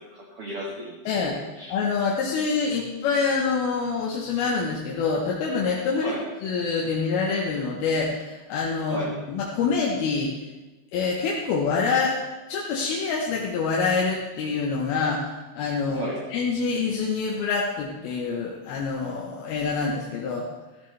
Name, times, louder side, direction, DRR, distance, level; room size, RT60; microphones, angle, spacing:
voice 1, 0.0-0.9 1.3-1.8 6.0-6.2 8.9-9.1 15.9-16.2, right 1 dB, 50° right, -4 dB, 2.0 m, -34 dB
voice 2, 1.7-6.1 6.4-10.3 10.9-12.2 12.5-16.0 16.3-20.5, left 4 dB, 85° left, -2 dB, 3.1 m, -26 dB
14.0 x 13.5 x 3.3 m, 1.1 s
omnidirectional pair, 4.3 m